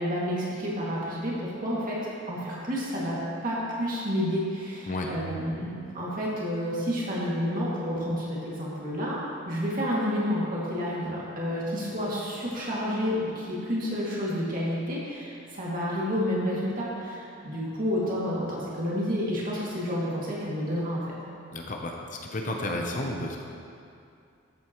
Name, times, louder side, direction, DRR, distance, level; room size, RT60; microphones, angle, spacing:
voice 1, 0.0-2.0 2.3-21.1, equal, 40° right, -6 dB, 2.3 m, -30 dB
voice 2, 21.5-23.4, left 1 dB, 40° left, 1 dB, 0.7 m, -32 dB
13.0 x 8.2 x 3.1 m, 2.5 s
head